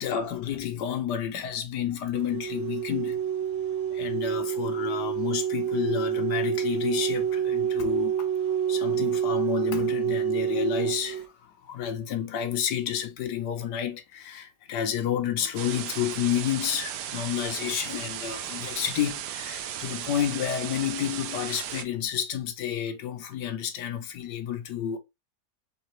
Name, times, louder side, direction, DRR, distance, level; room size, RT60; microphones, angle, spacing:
voice 1, 0.0-3.2 3.9-8.3 8.7-25.0, left 9 dB, 90° left, 1.4 m, -30 dB
sound 1, 2.1-11.2, right 9 dB, 60° right, 1.0 m, -28 dB
sound 2, 15.6-21.8, right 10 dB, 85° right, 1.2 m, -36 dB
4.0 x 3.4 x 3.0 m
omnidirectional pair, 1.7 m